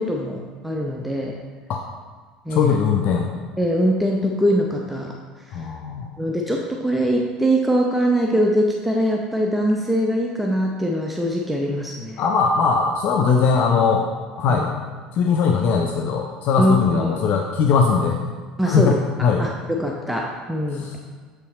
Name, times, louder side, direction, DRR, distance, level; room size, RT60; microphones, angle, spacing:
voice 1, 0.0-1.3 2.5-2.8 3.6-5.1 6.2-12.2 14.5-14.6 16.6-16.8 17.1-17.2 18.6-19.0 19.4-20.9, equal, 5° right, 0 dB, 0.7 m, -22 dB
voice 2, 2.5-3.3 5.5-6.1 12.2-14.1 14.4-14.7 15.1-18.2 18.6-19.4 20.7-21.0, left 5 dB, 50° left, 2 dB, 0.6 m, -20 dB
7.7 x 5.6 x 3.1 m, 1.5 s
figure-of-eight pair, 65°, 4 cm